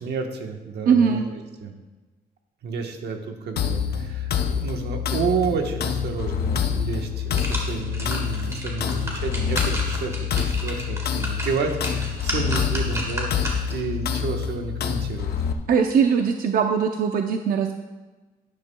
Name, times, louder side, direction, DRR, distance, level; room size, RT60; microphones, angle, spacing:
voice 1, 0.0-1.8 2.6-15.3, right 5 dB, 85° right, 4 dB, 1.2 m, -30 dB
voice 2, 0.9-1.2 15.7-17.7, right 6 dB, 60° right, 5 dB, 0.6 m, -20 dB
sound 1, 3.6-15.5, left 7 dB, 70° left, 0.8 m, -27 dB
sound 2, 7.0-13.9 14.3-14.4, right 1 dB, 15° right, 1.7 m, -33 dB
12.0 x 10.5 x 2.3 m, 1.2 s
wide cardioid pair, 160°, 17 cm